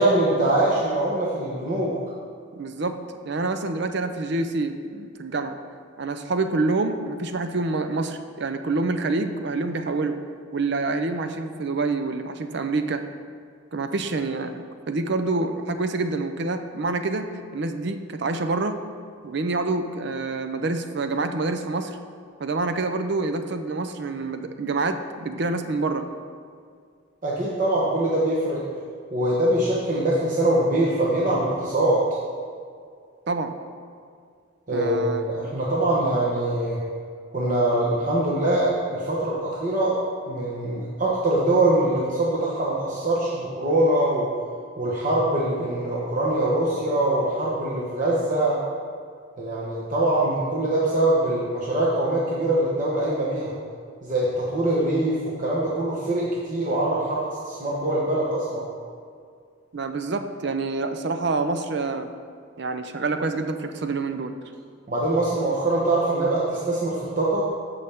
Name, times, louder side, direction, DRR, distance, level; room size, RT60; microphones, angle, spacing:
voice 1, 0.0-2.0 27.2-28.7 29.1-32.1 34.7-36.8 37.3-40.0 40.3-44.3 44.8-48.6 49.4-53.5 54.0-58.7 64.9-67.5, right 1 dB, 40° right, -6 dB, 1.1 m, -23 dB
voice 2, 2.5-3.0 3.3-5.6 6.0-10.1 10.5-13.0 13.7-17.3 17.5-18.8 19.2-22.0 22.4-26.0 33.3-33.6 34.7-35.5 59.7-62.1 62.6-64.3, right 3 dB, 60° right, 8 dB, 0.6 m, -27 dB
14.0 x 5.6 x 3.5 m, 2.2 s
head